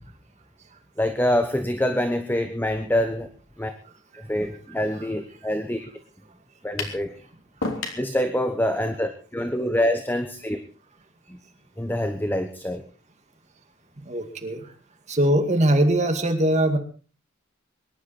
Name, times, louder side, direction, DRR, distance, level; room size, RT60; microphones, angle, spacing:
voice 1, 1.0-3.3 3.6-3.7 4.1-5.9 6.6-7.1 8.0-10.6 11.3-11.4 11.8-12.8, left 1 dB, 10° left, 8 dB, 1.0 m, -25 dB
sound 1, 6.8-7.0 7.6-8.1, left 3 dB, 75° left, 3.4 m, -29 dB
voice 2, 14.0-14.6 15.1-16.8, right 1 dB, 35° right, 6 dB, 2.2 m, -21 dB
23.5 x 11.5 x 4.3 m, 0.37 s
head